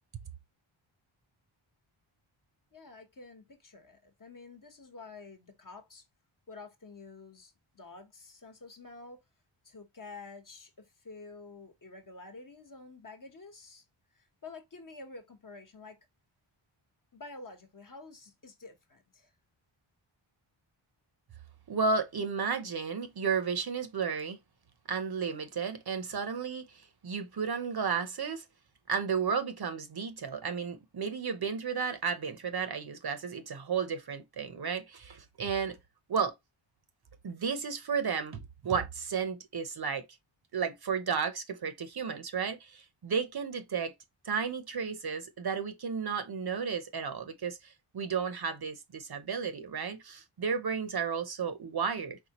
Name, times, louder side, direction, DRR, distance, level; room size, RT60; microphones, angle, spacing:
voice 1, 2.7-6.0 6.5-9.2 9.6-13.8 14.1-16.0 17.1-19.3, left 3 dB, 40° left, 1.1 m, -49 dB
voice 2, 21.7-24.4 24.9-28.4 28.9-35.8 36.1-36.3 37.2-40.0 40.5-43.9 44.2-52.2, right 6 dB, 50° right, 0.8 m, -33 dB
4.3 x 3.6 x 2.9 m
wide cardioid pair, 100°, 50 cm